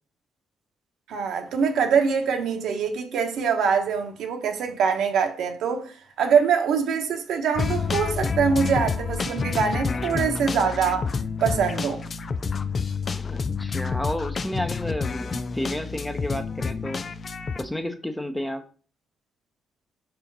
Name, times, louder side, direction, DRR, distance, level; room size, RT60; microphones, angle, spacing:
voice 1, 1.1-11.1 11.4-12.0, right 6 dB, 75° right, 1.2 m, -24 dB
sound 1, 7.5-17.6, left 5 dB, 45° left, 0.5 m, -29 dB
voice 2, 13.1-17.0 17.6-18.7, left 1 dB, 10° left, 1.0 m, -31 dB
5.1 x 4.4 x 5.4 m
cardioid pair, 70°, 0 cm